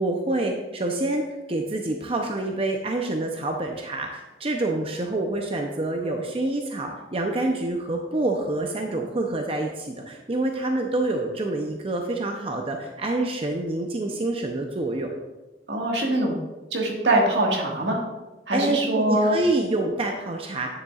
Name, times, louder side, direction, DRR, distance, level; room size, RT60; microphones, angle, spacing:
voice 1, 0.0-15.1 18.5-20.7, right 2 dB, 35° right, 2 dB, 0.6 m, -27 dB
voice 2, 15.7-16.4 16.7-18.0 18.5-19.4, right 1 dB, 80° right, -1 dB, 1.7 m, -23 dB
9.6 x 7.0 x 2.4 m, 1.1 s
head